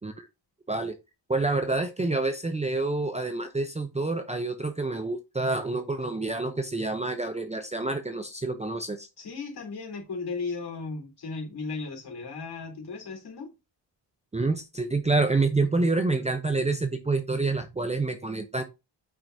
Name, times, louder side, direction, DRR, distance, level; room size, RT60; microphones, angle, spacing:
voice 1, 1.3-9.1 14.3-18.6, right 3 dB, 15° right, 0.6 m, -27 dB
voice 2, 9.2-13.5, left 4 dB, 55° left, 3.6 m, -36 dB
8.7 x 5.9 x 2.7 m
wide cardioid pair, 165°, 45 cm